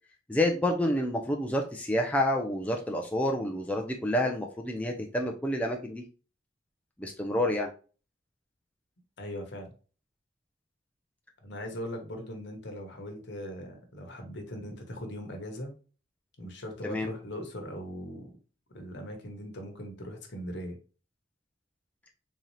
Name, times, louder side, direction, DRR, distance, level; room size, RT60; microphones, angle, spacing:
voice 1, 0.3-6.0 7.0-7.7 16.8-17.1, left 1 dB, 5° left, 2 dB, 0.4 m, -29 dB
voice 2, 9.2-9.7 11.4-15.7 16.4-18.3 18.7-20.8, equal, 60° left, 3 dB, 1.0 m, -40 dB
3.8 x 2.8 x 3.1 m, 0.36 s
head